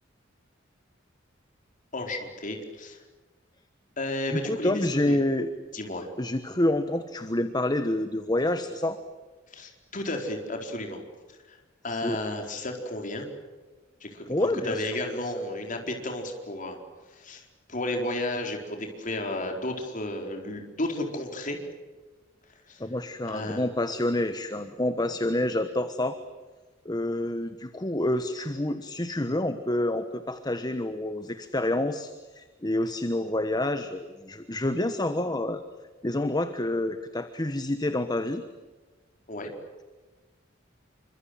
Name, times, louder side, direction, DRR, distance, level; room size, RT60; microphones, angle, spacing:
voice 1, 1.9-3.0 4.0-5.2 5.7-6.1 9.5-11.0 11.3-11.6 11.8-13.3 14.0-16.8 17.1-17.4 17.7-21.6 22.7-22.8 23.3-23.7 39.3-39.5, left 1 dB, 45° left, 3 dB, 4.4 m, -33 dB
voice 2, 4.3-5.5 6.2-9.0 12.0-12.4 14.3-14.9 15.2-15.3 22.8-26.2 26.8-35.6 36.0-38.4, left 1 dB, 20° left, 10 dB, 1.2 m, -28 dB
28.0 x 25.0 x 7.9 m, 1.3 s
head